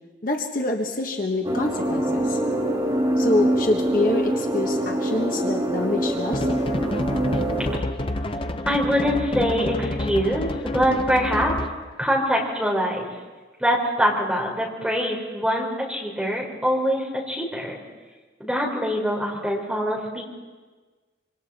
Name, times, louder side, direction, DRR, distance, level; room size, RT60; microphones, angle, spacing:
voice 1, 0.2-2.4 3.2-6.5, left 2 dB, 45° left, 2 dB, 1.4 m, -26 dB
sound 1, 1.4-7.8, right 1 dB, 20° right, 2.6 m, -24 dB
sound 2, 6.3-11.8, left 1 dB, 30° left, 0.7 m, -28 dB
voice 2, 8.6-11.5 12.0-13.1 13.6-17.8 18.4-20.2, equal, 5° right, -3 dB, 3.9 m, -24 dB
26.0 x 25.0 x 4.3 m, 1.3 s
head